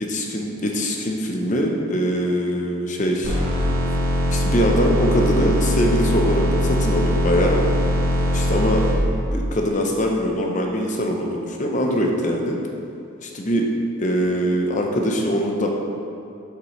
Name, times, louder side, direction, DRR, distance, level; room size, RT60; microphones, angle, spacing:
voice 1, 0.0-3.4 4.3-7.6 8.3-8.8 9.3-12.6 13.2-13.7 14.0-15.7, equal, 35° left, 1 dB, 0.7 m, -22 dB
sound 1, 3.2-8.9, equal, 75° right, 1.5 m, -21 dB
7.8 x 6.7 x 3.2 m, 2.7 s
head